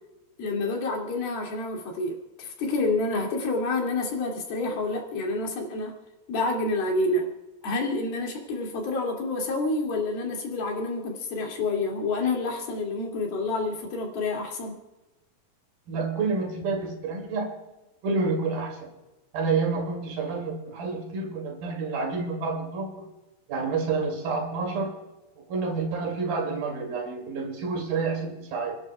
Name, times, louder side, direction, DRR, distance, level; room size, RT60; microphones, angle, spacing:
voice 1, 0.4-6.0 6.3-7.3 7.6-14.7 15.9-16.0, left 2 dB, 85° left, 0 dB, 4.4 m, -28 dB
voice 2, 15.9-17.5 18.0-18.9 19.3-23.1 23.5-25.0 25.4-28.8, right 4 dB, 75° right, 2 dB, 4.2 m, -29 dB
30.0 x 11.0 x 2.3 m, 1.0 s
omnidirectional pair, 4.2 m